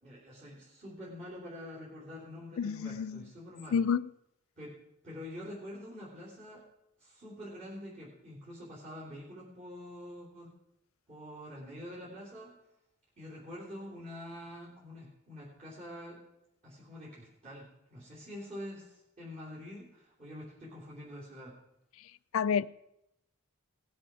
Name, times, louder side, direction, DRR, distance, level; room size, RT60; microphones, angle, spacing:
voice 1, 0.0-3.8 4.6-4.7 5.0-6.6 7.0-10.5 11.1-12.6 13.2-16.2 16.6-21.6, left 1 dB, 35° right, -8 dB, 3.4 m, -46 dB
voice 2, 2.6-3.3 3.7-4.1 22.0-22.7, left 6 dB, 75° left, 16 dB, 0.3 m, -30 dB
18.5 x 7.7 x 4.8 m, 0.83 s
head